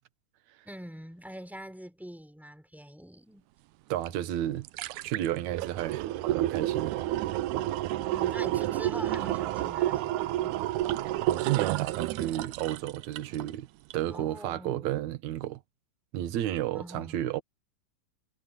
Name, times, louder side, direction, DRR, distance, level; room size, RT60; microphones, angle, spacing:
voice 1, 0.6-3.5 8.1-10.6 14.1-14.9 16.7-17.2, equal, ahead, 6.1 m, -44 dB
voice 2, 3.9-4.7 5.0-6.9 11.2-13.7 13.9-15.6 16.1-17.4, right 13 dB, 65° right, 2.3 m, -32 dB
sound 1, 4.1-4.2 4.5-13.5 13.9-14.0, right 15 dB, 80° right, 1.9 m, -30 dB
omnidirectional pair, 3.9 m